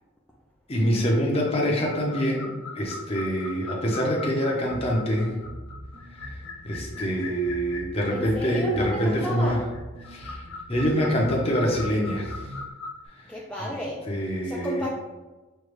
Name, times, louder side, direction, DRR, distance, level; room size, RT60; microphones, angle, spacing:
voice 1, 0.7-5.4 6.6-9.6 10.1-10.4 10.7-12.5 13.6-13.7 14.1-14.8, equal, 25° left, -1 dB, 0.7 m, -25 dB
sound 1, 1.9-13.1, left 4 dB, 80° left, 0.6 m, -41 dB
sound 2, 4.7-12.7, equal, 50° right, 0.8 m, -42 dB
voice 2, 8.1-9.6 13.3-14.0 14.4-14.9, equal, 5° left, -5 dB, 0.4 m, -33 dB
6.4 x 2.3 x 3.1 m, 1.2 s
head